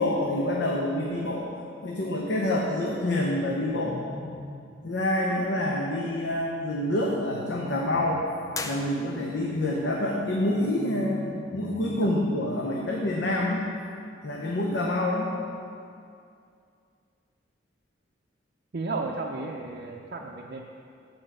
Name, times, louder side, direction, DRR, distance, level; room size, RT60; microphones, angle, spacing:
voice 1, 0.0-1.5 1.8-4.0 4.8-8.2 8.6-13.7 14.2-15.3, left 1 dB, 70° left, -2 dB, 0.7 m, -27 dB
sound 1, 2.9-4.9 6.6-8.5 10.3-12.3, left 1 dB, 50° left, 1.1 m, -43 dB
sound 2, 8.5-9.5, left 3 dB, 20° left, 0.4 m, -37 dB
voice 2, 18.7-20.6, right 3 dB, 55° right, -2 dB, 0.5 m, -33 dB
8.0 x 4.5 x 6.3 m, 2.4 s
head